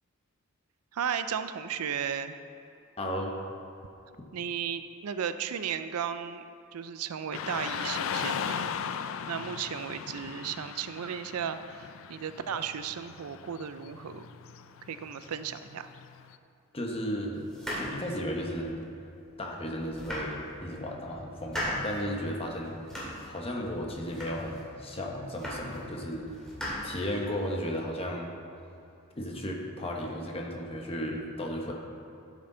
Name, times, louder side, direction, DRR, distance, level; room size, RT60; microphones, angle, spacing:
voice 1, 0.9-2.3 4.3-6.4 6.7-8.7 9.3-14.3 14.9-15.9, right 8 dB, 90° right, 11 dB, 0.5 m, -35 dB
voice 2, 3.0-3.3 16.7-18.8 19.4-22.7 23.3-26.3 26.8-28.3 29.2-31.7, equal, 25° left, 0 dB, 1.0 m, -34 dB
Car passing by / Traffic noise roadway noise, 7.3-16.3, left 7 dB, 65° left, 0.4 m, -38 dB
sound 1, 17.5-18.8 19.3-19.4 19.8-20.8 21.2-22.0 22.4-23.3 23.7-24.7 25.1-25.8 26.1-27.4, equal, 5° left, 2.1 m, -38 dB
13.0 x 6.3 x 3.9 m, 2.8 s
head